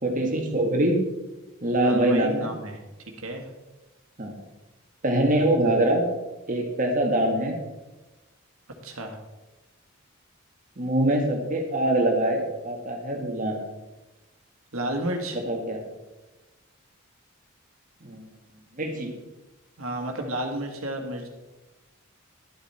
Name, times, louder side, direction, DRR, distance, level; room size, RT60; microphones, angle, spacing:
voice 1, 0.0-1.0 1.6-2.5 4.2-4.4 5.0-6.0 6.5-7.6 10.8-13.7 15.3-15.8 18.0-18.3 18.8-19.1, right 1 dB, 40° right, 2 dB, 1.8 m, -24 dB
voice 2, 1.8-2.8 3.2-3.5 8.8-9.2 14.7-15.4 19.8-21.3, right 1 dB, 75° right, 3 dB, 1.8 m, -31 dB
11.5 x 8.2 x 4.4 m, 1.1 s
head